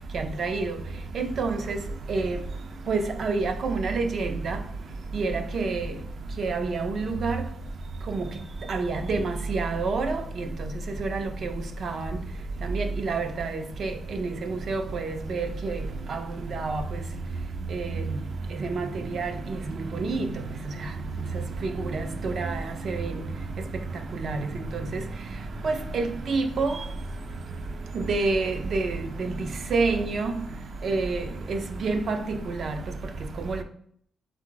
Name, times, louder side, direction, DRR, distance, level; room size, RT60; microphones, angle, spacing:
voice 1, 1.2-1.8 2.1-2.3 2.9-4.6 5.1-5.8 6.4-7.4 8.1-8.2 8.7-10.1 11.0-11.5 11.8-11.9 12.7-13.5 13.8-13.9 14.2-15.7 16.6-16.8 17.7-17.8 18.8-18.9 19.1-19.3 20.1-20.2 21.9-22.5 22.9-23.1 24.2-24.4 25.6-26.7 28.0-29.0 29.7-30.3 30.8-31.2 31.5-32.4 33.5-33.6, right 3 dB, 45° right, 0.4 m, -27 dB
3.6 x 3.2 x 3.8 m
wide cardioid pair, 170°, 0 cm